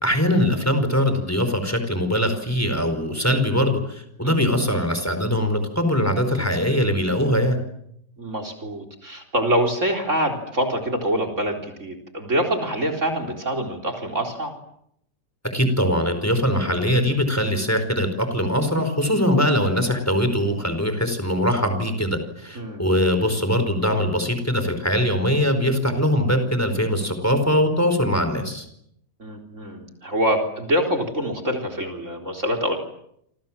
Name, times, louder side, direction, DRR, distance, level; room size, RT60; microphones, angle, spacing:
voice 1, 0.0-7.6 15.4-28.7, equal, 10° left, 8 dB, 4.9 m, -22 dB
voice 2, 8.2-14.5 22.5-22.8 29.2-32.8, equal, 45° right, 7 dB, 4.4 m, -25 dB
28.0 x 27.5 x 7.6 m, 0.75 s
omnidirectional pair, 1.8 m